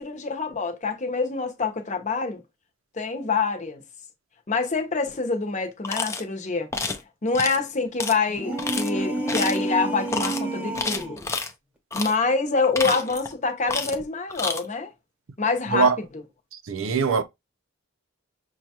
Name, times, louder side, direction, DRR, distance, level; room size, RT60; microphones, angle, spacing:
voice 1, 0.0-2.4 2.9-3.8 4.5-6.7 7.2-11.2 11.9-14.9 15.4-16.0, left 4 dB, 35° left, 0.8 m, -26 dB
sound 1, 5.8-6.2 6.7-7.0 7.3-7.6 8.0-8.1 8.6-8.9 9.3-9.6 10.1-10.4 10.7-11.5 11.9-12.1 12.6-13.3 13.7-14.0 14.3-14.6, left 3 dB, 15° left, 0.5 m, -29 dB
sound 2, 8.3-11.3, right 1 dB, 5° right, 1.0 m, -29 dB
voice 2, 16.7-17.2, right 5 dB, 80° right, 0.6 m, -21 dB
6.3 x 2.3 x 2.9 m
head